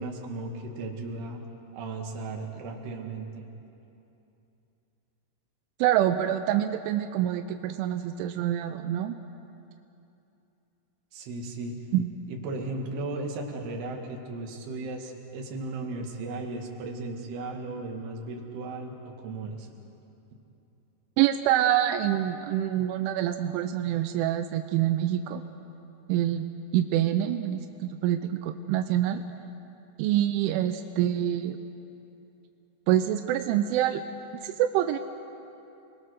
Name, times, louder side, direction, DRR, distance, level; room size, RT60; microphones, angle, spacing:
voice 1, 0.0-1.5 1.7-3.5 11.1-11.8 12.3-19.7, right 2 dB, 65° right, 1 dB, 3.9 m, -36 dB
voice 2, 5.8-9.2 11.9-12.1 21.2-25.4 26.1-26.5 26.7-29.2 30.0-31.6 32.9-34.0 34.4-35.0, right 12 dB, 90° right, 7 dB, 3.2 m, -26 dB
28.5 x 21.5 x 6.4 m, 2.8 s
omnidirectional pair, 5.4 m